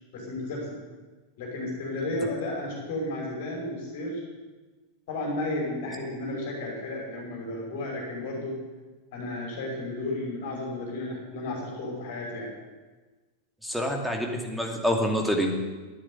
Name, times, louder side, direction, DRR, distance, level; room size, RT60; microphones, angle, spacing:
voice 1, 0.1-0.7 1.4-4.2 5.1-8.6 9.1-12.5, left 2 dB, 50° left, -1 dB, 5.7 m, -33 dB
voice 2, 13.6-15.6, equal, ahead, 1 dB, 2.5 m, -27 dB
11.5 x 9.7 x 9.9 m, 1.3 s
figure-of-eight pair, 90°, 0 cm